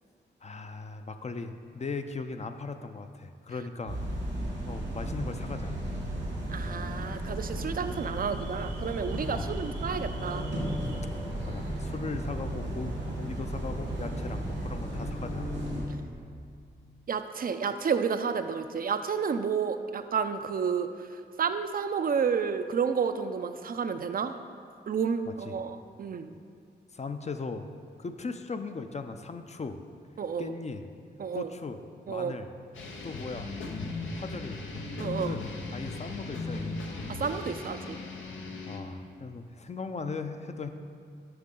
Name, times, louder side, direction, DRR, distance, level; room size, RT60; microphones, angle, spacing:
voice 1, 0.4-4.0 4.7-5.8 9.3-9.7 11.4-15.5 25.3-25.6 26.9-27.7 28.0-29.8 30.4-30.9 31.3-31.8 32.1-32.5 33.0-33.5 34.1-34.6 35.2-35.4 35.7-37.0 38.7-40.7, left 4 dB, 35° left, 8 dB, 0.5 m, -38 dB
sound 1, 3.9-15.8, right 1 dB, 85° right, 1.9 m, -34 dB
voice 2, 6.5-10.5 17.1-21.1 21.4-24.3 24.9-26.3 30.2-30.5 31.2-31.5 32.1-32.4 35.0-35.4 37.1-38.0, right 6 dB, 50° right, 10 dB, 0.4 m, -30 dB
Alarm, 7.8-14.7, right 2 dB, 65° right, 1.0 m, -45 dB
sound 2, 32.7-38.8, left 3 dB, 85° left, 0.7 m, -37 dB
7.8 x 5.5 x 3.7 m, 2.2 s
cardioid pair, 40°, 19 cm